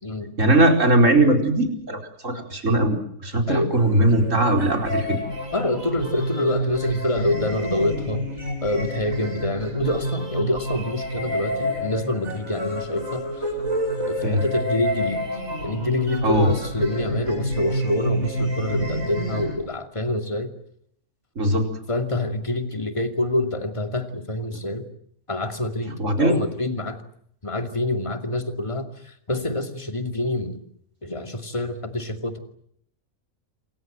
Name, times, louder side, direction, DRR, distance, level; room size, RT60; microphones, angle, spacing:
voice 1, 0.4-3.0 3.2-5.2 14.2-14.4 16.2-16.5 21.4-21.7 26.0-26.4, right 1 dB, 65° right, 4 dB, 5.0 m, -19 dB
sound 1, 3.7-19.6, equal, 80° right, 8.2 m, -29 dB
voice 2, 5.5-8.3 8.6-13.4 14.1-15.2 15.6-20.5 21.9-24.9 25.3-27.0 27.4-30.6 31.0-32.4, left 1 dB, 20° left, 6 dB, 2.6 m, -26 dB
28.0 x 24.5 x 7.8 m, 0.69 s
omnidirectional pair, 1.4 m